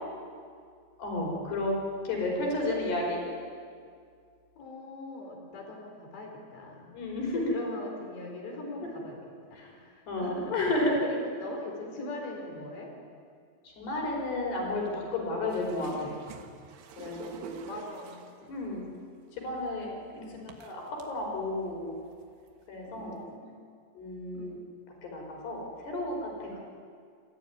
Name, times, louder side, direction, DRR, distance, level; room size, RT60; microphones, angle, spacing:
voice 1, 1.0-1.7 2.1-3.2 6.9-7.6 9.6-9.7 10.1-11.0 13.7-16.1 17.0-17.6 18.5-18.9 19.3-19.9 20.4-20.8 21.1-22.0 22.7-23.2 24.0-24.6 25.0-26.6, left 2 dB, 75° left, 0 dB, 7.1 m, -32 dB
voice 2, 4.6-6.8 7.3-9.3 9.6-12.9 15.9-16.1 17.6-19.0 20.1-20.4 22.9-23.5 24.3-24.6, left 2 dB, 90° left, 2 dB, 6.4 m, -41 dB
sound 1, 15.5-18.5 19.5-19.6 20.5-21.1 21.6-21.7 22.1-22.5 23.2-23.3, right 6 dB, 85° right, 3.8 m, -47 dB
28.5 x 15.5 x 9.6 m, 2.2 s
omnidirectional pair, 4.8 m